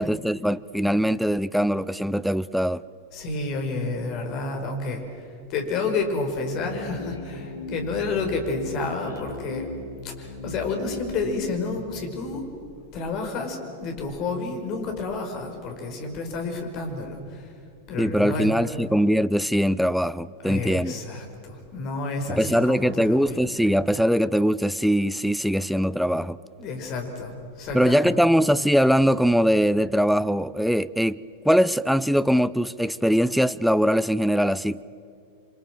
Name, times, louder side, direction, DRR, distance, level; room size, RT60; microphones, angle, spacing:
voice 1, 0.0-2.8 18.0-20.9 22.3-26.4 27.7-34.8, equal, ahead, 0.6 m, -22 dB
voice 2, 3.1-9.7 10.0-12.5 12.9-17.5 17.9-18.8 20.4-23.8 26.6-28.2, left 3 dB, 40° left, 5.1 m, -30 dB
sound 1, 6.2-13.4, left 2 dB, 75° left, 3.3 m, -39 dB
28.0 x 25.0 x 7.7 m
figure-of-eight pair, 90°, 0 cm